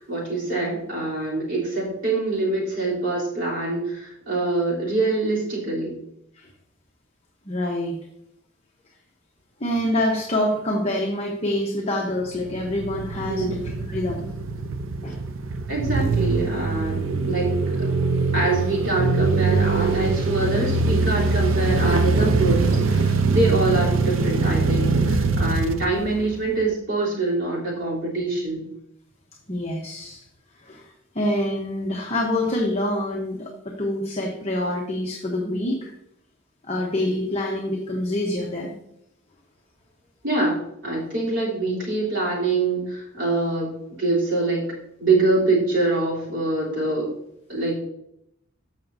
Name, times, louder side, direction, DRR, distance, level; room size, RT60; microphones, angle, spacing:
voice 1, 0.0-5.9 13.2-13.5 15.7-17.5 17.8-17.9 18.3-28.6 40.2-44.7 45.0-47.1 47.5-47.8, right 2 dB, 65° right, -6 dB, 3.5 m, -24 dB
voice 2, 7.5-8.0 9.6-14.3 15.0-15.1 29.5-30.2 30.6-30.9 31.1-35.9 36.6-38.7, left 1 dB, 30° left, -1 dB, 1.0 m, -26 dB
sound 1, 12.3-26.6, right 3 dB, 85° right, 0.6 m, -23 dB
14.0 x 6.0 x 2.7 m, 0.78 s
head